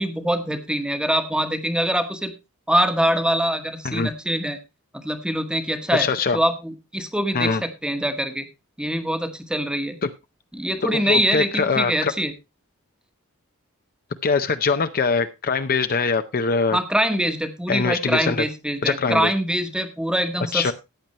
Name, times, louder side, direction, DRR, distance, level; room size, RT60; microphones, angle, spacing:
voice 1, 0.0-2.3 2.7-4.6 4.9-6.1 6.3-8.5 8.8-10.0 10.5-12.3 16.7-20.7, equal, 5° right, 8 dB, 1.2 m, -24 dB
voice 2, 5.9-6.4 7.3-7.6 10.0-10.1 10.8-12.1 14.2-16.8 17.7-18.4 18.8-19.3 20.5-20.7, left 4 dB, 40° left, 10 dB, 0.6 m, -22 dB
14.5 x 9.1 x 3.0 m, 0.24 s
head